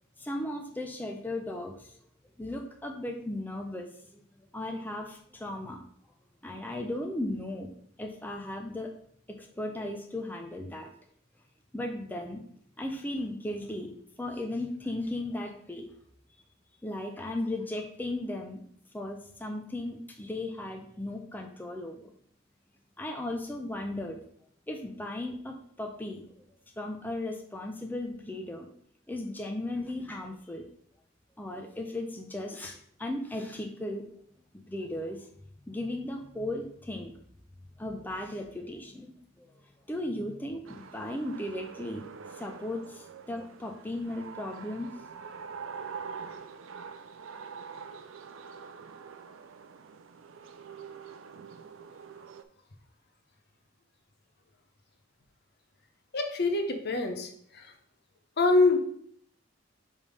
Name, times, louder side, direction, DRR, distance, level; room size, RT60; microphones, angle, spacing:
voice 1, 0.2-1.9 2.4-3.9 4.1-4.2 4.5-5.8 6.4-7.7 8.0-8.9 9.3-10.9 11.7-12.4 12.8-15.9 16.8-18.6 18.9-22.1 23.0-24.2 24.7-26.3 26.8-28.7 29.1-30.7 31.4-34.1 34.5-35.3 35.7-37.1 37.8-39.5 39.9-42.0 42.3-44.9, left 1 dB, 10° left, 2 dB, 0.5 m, -36 dB
sound 1, 40.7-52.4, right 6 dB, 85° right, 0.5 m, -45 dB
voice 2, 56.1-57.7 58.4-58.8, left 3 dB, 55° left, 5 dB, 0.9 m, -25 dB
5.2 x 3.4 x 5.3 m, 0.62 s
head